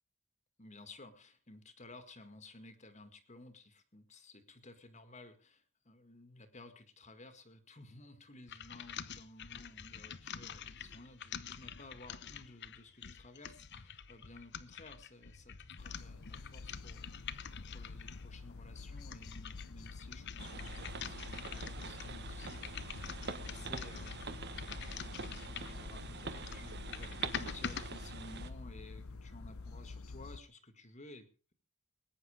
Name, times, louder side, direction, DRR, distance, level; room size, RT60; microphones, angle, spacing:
voice 1, 0.6-17.2 17.7-31.5, left 2 dB, 30° left, 9 dB, 1.9 m, -55 dB
sound 1, 8.5-18.3 18.9-25.8 26.3-27.9, left 7 dB, 50° left, 0.9 m, -47 dB
sound 2, 15.8-30.4, left 3 dB, 75° left, 0.8 m, -48 dB
sound 3, 20.4-28.5, right 4 dB, 50° right, 1.4 m, -45 dB
20.0 x 9.9 x 5.0 m, 0.36 s
head